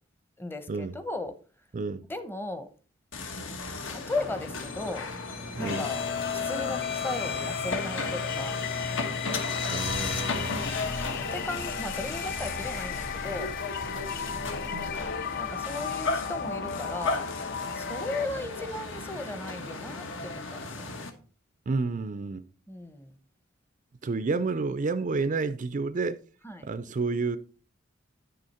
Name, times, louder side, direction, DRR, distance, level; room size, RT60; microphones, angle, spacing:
voice 1, 0.4-1.3 2.1-2.7 3.9-5.1 5.6-6.0 6.3-8.6 11.3-13.5 15.4-17.3 17.7-20.9 22.7-23.2 26.4-26.7, left 2 dB, 10° left, 0.8 m, -36 dB
voice 2, 1.7-2.1 5.6-5.9 9.7-10.9 21.7-22.5 24.0-26.2 26.6-27.4, right 4 dB, 40° right, 0.4 m, -30 dB
sound 1, 3.1-21.1, left 3 dB, 65° left, 1.4 m, -34 dB
sound 2, 5.6-18.3, left 7 dB, 50° left, 0.4 m, -37 dB
9.9 x 6.3 x 4.2 m
head